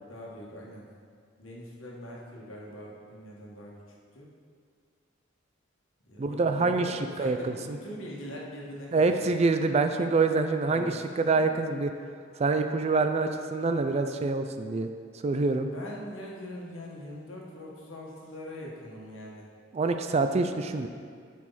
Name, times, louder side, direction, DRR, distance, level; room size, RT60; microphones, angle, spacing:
voice 1, 0.1-0.9 1.4-3.8 4.1-4.3 6.0-9.2 10.6-11.5 15.6-19.5, left 1 dB, 75° left, -3 dB, 1.6 m, -42 dB
voice 2, 6.2-7.8 8.9-11.9 12.4-14.9 15.2-15.7 19.7-20.9, right 3 dB, 30° right, 7 dB, 0.4 m, -26 dB
11.0 x 4.9 x 4.1 m, 2.1 s
head